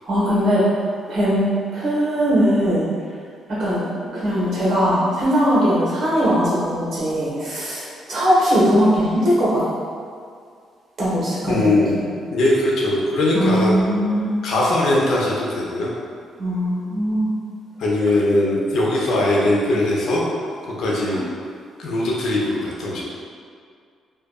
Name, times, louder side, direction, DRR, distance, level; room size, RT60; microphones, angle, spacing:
voice 1, 0.0-0.6 1.1-2.9 3.5-3.8 4.1-9.6 11.0-11.6 11.9-12.1 13.3-14.4 16.4-17.3 21.1-21.2, equal, 60° right, -8 dB, 1.1 m, -20 dB
voice 2, 11.5-12.0 12.3-13.8 14.4-15.9 17.8-20.2 20.6-21.2 21.8-23.0, left 1 dB, 70° left, -4 dB, 0.5 m, -20 dB
2.7 x 2.3 x 2.2 m, 2.2 s
cardioid pair, 90°, 0 cm